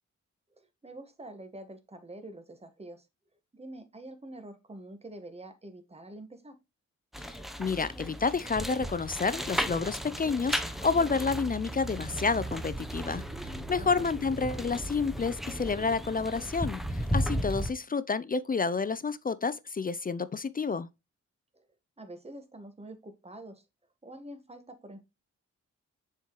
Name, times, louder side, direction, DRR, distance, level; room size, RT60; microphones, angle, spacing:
voice 1, 0.6-3.1 3.5-6.6 13.8-14.0 21.5-21.7 22.0-23.6 24.0-25.0, right 1 dB, 20° right, 1.4 m, -46 dB
sound 1, 7.1-17.7, equal, ahead, 0.8 m, -35 dB
voice 2, 7.2-20.9, left 4 dB, 30° left, 0.4 m, -30 dB
6.9 x 4.4 x 3.0 m
cardioid pair, 65°, 30 cm